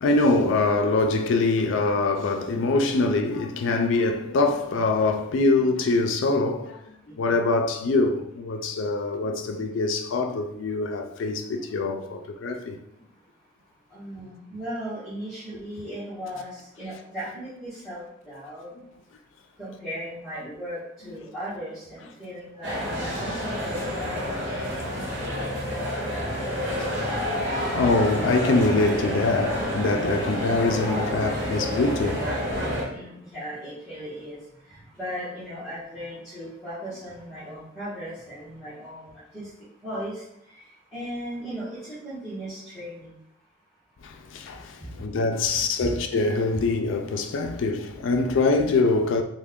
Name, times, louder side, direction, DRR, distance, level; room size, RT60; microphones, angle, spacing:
voice 1, 0.0-12.8 26.8-26.9 27.7-32.6 44.0-49.2, left 3 dB, 75° left, 0.4 m, -24 dB
voice 2, 7.1-7.4 13.9-18.7 19.6-24.2 32.9-34.4 34.9-39.1 39.3-39.5 39.8-40.2 40.9-43.1 45.8-46.0, equal, ahead, 1.2 m, -36 dB
sound 1, 22.6-32.8, equal, 65° right, 1.1 m, -29 dB
3.3 x 2.2 x 3.5 m
head